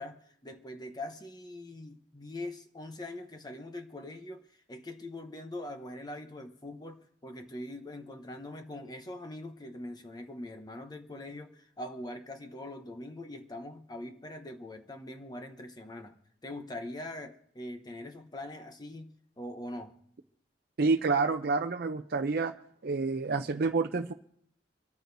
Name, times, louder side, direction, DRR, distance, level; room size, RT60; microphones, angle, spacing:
voice 1, 0.0-20.0, left 1 dB, 20° left, 0.9 m, -43 dB
voice 2, 20.8-22.5 22.8-24.1, right 4 dB, 55° right, 0.6 m, -28 dB
25.5 x 13.5 x 2.7 m
head